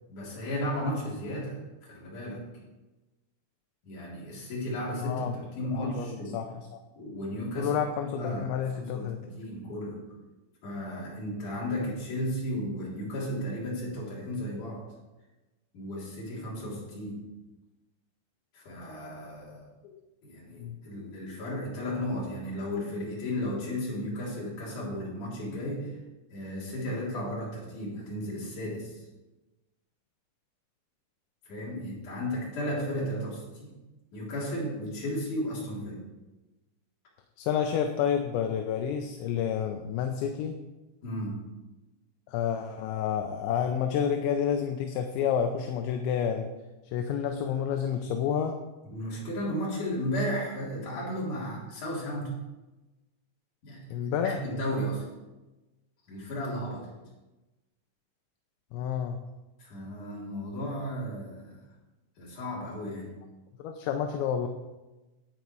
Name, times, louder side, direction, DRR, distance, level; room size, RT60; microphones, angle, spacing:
voice 1, 0.1-2.5 3.8-6.4 7.0-10.0 10.6-14.8 15.7-17.2 18.5-19.7 20.2-25.9 26.3-29.0 31.5-33.8 34.1-36.0 41.0-41.4 48.8-52.4 53.6-53.8 54.2-55.1 56.1-56.9 59.6-61.6 62.2-63.1, equal, 40° left, -5 dB, 4.7 m, -34 dB
voice 2, 5.0-5.4 5.7-6.8 7.6-9.2 19.8-20.0 20.6-20.8 37.4-40.6 42.3-46.5 46.9-48.6 53.9-54.4 58.7-59.2 63.6-64.5, left 8 dB, 80° left, 5 dB, 2.8 m, -29 dB
12.0 x 9.5 x 4.7 m, 1.1 s
omnidirectional pair, 5.7 m